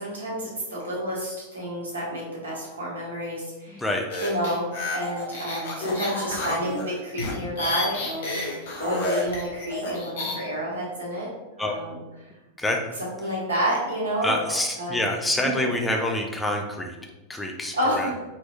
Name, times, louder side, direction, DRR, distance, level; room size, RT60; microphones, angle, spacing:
voice 1, 0.0-3.8 4.2-11.3 11.6-12.0 13.2-15.0 15.4-15.5 17.7-18.1, equal, 70° right, -5 dB, 1.3 m, -29 dB
voice 2, 3.7-4.0 11.6-11.7 12.6-12.8 14.2-17.0 17.3-18.1, left 1 dB, 10° left, 2 dB, 0.5 m, -26 dB
sound 1, 4.1-10.4, left 2 dB, 60° left, 0.8 m, -30 dB
3.8 x 2.9 x 2.6 m, 1.1 s
figure-of-eight pair, 90°, 0 cm